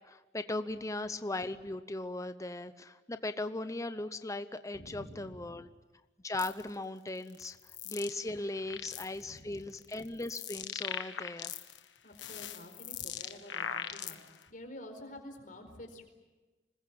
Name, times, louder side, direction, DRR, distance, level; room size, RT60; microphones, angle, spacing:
voice 1, 0.0-5.7 6.2-7.6 7.9-11.5, left 2 dB, 15° left, 10 dB, 0.7 m, -38 dB
voice 2, 4.7-5.6 9.1-9.6 12.0-14.2 14.5-16.0, left 1 dB, 45° left, 5 dB, 4.6 m, -49 dB
sound 1, 6.4-6.6 7.3-8.2 8.5-9.2 9.8-11.8 12.1-14.4, left 8 dB, 75° left, 1.5 m, -40 dB
26.5 x 21.0 x 8.9 m, 1.2 s
head